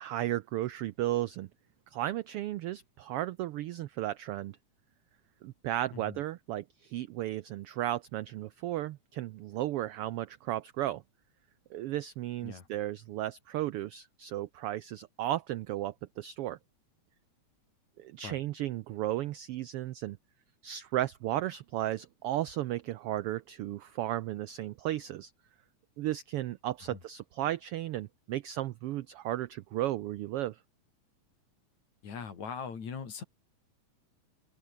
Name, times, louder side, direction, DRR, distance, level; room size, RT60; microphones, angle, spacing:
voice 1, 0.0-1.5 1.9-4.6 5.4-11.0 11.7-16.6 18.0-20.2 20.6-25.3 26.0-30.6, right 14 dB, 85° right, 1.2 m, -34 dB
voice 2, 32.0-33.2, left 6 dB, 75° left, 4.8 m, -40 dB
omnidirectional pair, 3.3 m